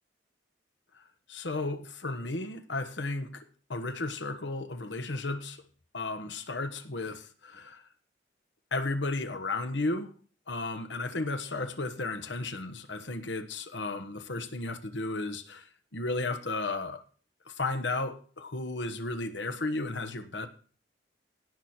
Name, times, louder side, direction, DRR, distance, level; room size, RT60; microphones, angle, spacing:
voice 1, 1.3-5.6 5.9-7.9 8.7-10.1 10.5-17.1 17.4-20.5, left 2 dB, 70° left, 1.3 m, -34 dB
17.0 x 6.4 x 4.3 m
head